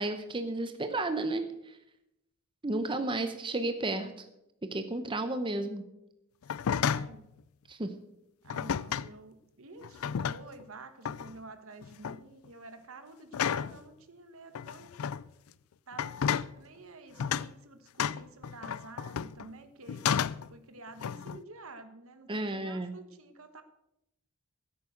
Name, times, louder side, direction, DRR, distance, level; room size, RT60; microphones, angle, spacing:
voice 1, 0.0-1.8 2.6-4.3 4.7-5.8 7.7-7.9 22.3-22.9, right 2 dB, 25° right, 8 dB, 0.8 m, -32 dB
sound 1, 6.4-7.2 8.5-9.1 9.8-10.6 11.0-11.4 11.8-12.2 13.3-13.8 14.5-15.2 15.9-16.5 17.2-17.5 18.0-19.5 19.9-20.5 21.0-21.4, left 8 dB, 70° left, 0.4 m, -32 dB
voice 2, 6.7-7.3 8.4-14.9 15.9-16.1 16.6-23.6, right 3 dB, 65° right, 10 dB, 1.4 m, -50 dB
15.0 x 8.6 x 6.4 m, 0.85 s
head